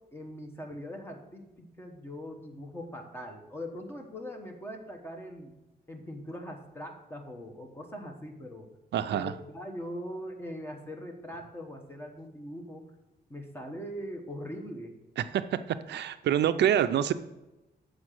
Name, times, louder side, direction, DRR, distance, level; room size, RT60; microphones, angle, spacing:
voice 1, 0.1-5.6 5.9-8.7 9.1-12.9 13.3-15.0, equal, 15° left, 3 dB, 1.1 m, -41 dB
voice 2, 8.9-9.3 15.2-15.4 15.9-17.1, right 10 dB, 85° right, 11 dB, 0.4 m, -26 dB
7.3 x 5.0 x 6.3 m, 0.99 s
wide cardioid pair, 165°, 17 cm